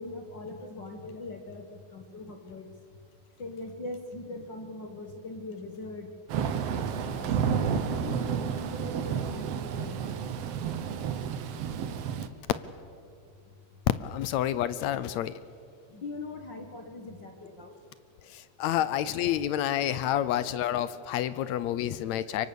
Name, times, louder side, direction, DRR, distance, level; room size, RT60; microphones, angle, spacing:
voice 1, 0.0-2.7 3.4-6.1 7.0-10.2 15.9-17.7, left 2 dB, 50° left, 4 dB, 1.4 m, -41 dB
Thunder / Rain, 6.3-12.3, right 7 dB, 65° right, 1.7 m, -31 dB
voice 2, 14.0-15.3 18.3-22.5, left 11 dB, 75° left, 15 dB, 1.7 m, -29 dB
24.0 x 24.0 x 6.9 m, 2.4 s
omnidirectional pair, 3.8 m